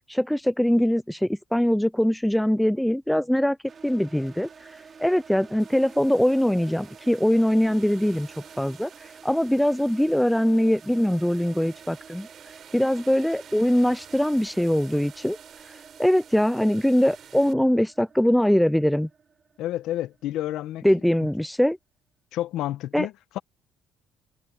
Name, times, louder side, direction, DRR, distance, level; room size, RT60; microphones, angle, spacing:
voice 1, 0.1-3.6 3.8-4.5 5.0-8.3 8.6-12.3 12.7-15.4 15.7-19.1 20.8-21.8 22.9-23.1, equal, ahead, 0.3 m, -22 dB
sound 1, 3.7-20.5, right 6 dB, 30° right, 2.8 m, -50 dB
sound 2, 5.6-17.5, right 9 dB, 45° right, 3.8 m, -51 dB
voice 2, 19.6-20.8 22.3-23.4, left 13 dB, 70° left, 1.1 m, -30 dB
cardioid pair, 150°, 0 cm